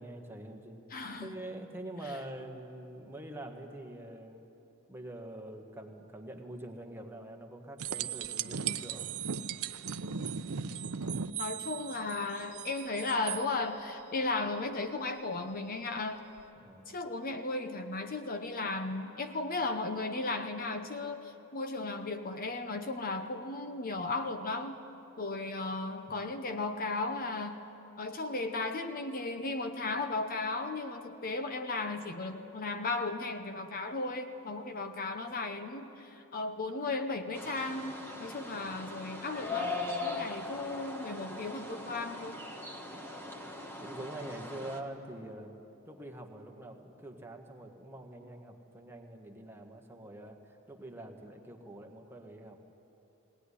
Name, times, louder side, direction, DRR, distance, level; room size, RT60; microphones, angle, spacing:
voice 1, 0.0-0.8 1.2-4.4 4.9-9.1 16.6-16.9 43.8-45.5 45.9-52.7, right 1 dB, 10° right, 3 dB, 1.6 m, -45 dB
voice 2, 0.9-1.4 11.4-16.2 16.9-24.8 25.2-27.6 28.0-39.8 40.0-42.4, left 3 dB, 40° left, 7 dB, 0.9 m, -35 dB
sound 1, 7.8-13.4 16.4-16.5, right 7 dB, 70° right, 0.7 m, -37 dB
sound 2, 37.3-44.8, left 3 dB, 10° left, 1.6 m, -40 dB
19.0 x 19.0 x 10.0 m, 3.0 s
head